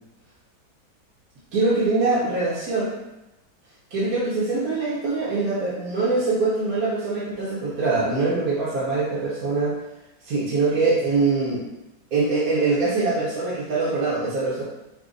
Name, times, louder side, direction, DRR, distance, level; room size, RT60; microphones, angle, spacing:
voice 1, 1.5-2.9 3.9-9.8 10.2-11.6 12.1-14.6, right 3 dB, 60° right, -7 dB, 1.3 m, -23 dB
4.8 x 2.2 x 3.8 m, 0.98 s
omnidirectional pair, 1.8 m